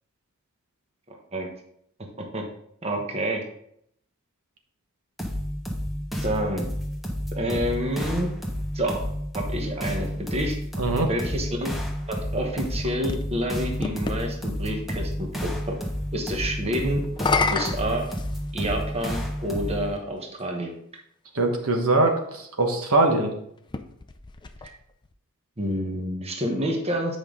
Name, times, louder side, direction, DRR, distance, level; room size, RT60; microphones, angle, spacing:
voice 1, 1.1-1.5 2.3-2.5 2.8-3.4 6.2-6.6 7.3-8.3 8.7-9.1 9.3-10.6 11.1-11.7 12.1-15.8 16.1-17.0 17.4-18.1 18.5-20.7 25.6-27.2, equal, 30° right, 2 dB, 1.1 m, -28 dB
sound 1, 5.2-20.0, equal, ahead, 1.3 m, -31 dB
voice 2, 10.8-11.1 21.3-23.3, right 2 dB, 75° right, 3 dB, 1.2 m, -22 dB
sound 2, 12.4-14.2 17.0-18.8 19.8-19.9 23.6-25.1, left 4 dB, 20° left, 0.5 m, -30 dB
8.2 x 5.2 x 3.7 m, 0.71 s
head